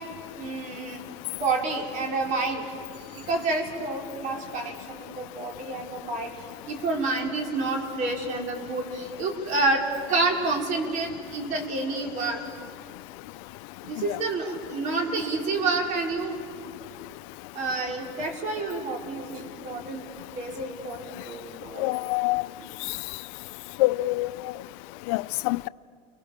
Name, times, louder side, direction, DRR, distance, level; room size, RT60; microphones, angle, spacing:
voice 1, 0.4-1.0 1.3-2.6 3.1-6.3 6.7-12.4 13.8-16.4 17.5-22.1 22.6-22.7, right 3 dB, 50° right, 5.3 m, -29 dB
voice 2, 21.8-22.4 23.8-24.3 25.1-25.7, left 20 dB, 65° left, 0.6 m, -25 dB
30.0 x 23.5 x 7.5 m
supercardioid pair, 130°, 16 cm